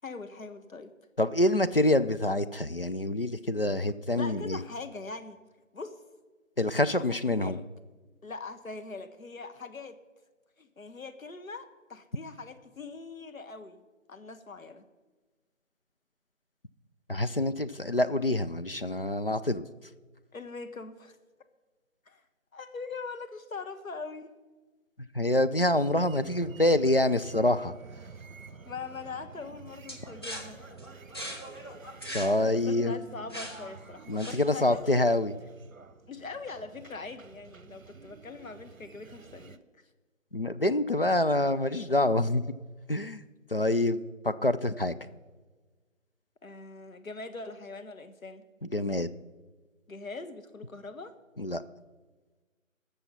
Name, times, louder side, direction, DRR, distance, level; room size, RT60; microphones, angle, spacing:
voice 1, 0.0-0.9 4.1-5.4 5.7-5.9 6.9-7.6 8.2-10.0 10.6-14.8 20.3-21.2 22.1-22.2 22.5-24.3 28.7-30.6 32.7-34.8 36.1-39.6 46.4-48.4 49.9-51.1, left 4 dB, 80° left, 9 dB, 1.3 m, -42 dB
voice 2, 1.2-4.6 6.6-7.6 17.1-19.6 25.1-27.7 32.1-32.9 34.1-35.3 40.3-42.4 42.9-43.2 43.5-45.0 48.6-49.1 51.4-51.6, left 1 dB, 45° left, 11 dB, 0.4 m, -26 dB
sound 1, 25.7-39.6, right 5 dB, 75° right, 0.9 m, -50 dB
sound 2, 29.9-34.7, equal, 20° left, 0.9 m, -41 dB
18.0 x 6.9 x 5.6 m, 1.3 s
figure-of-eight pair, 165°, 41 cm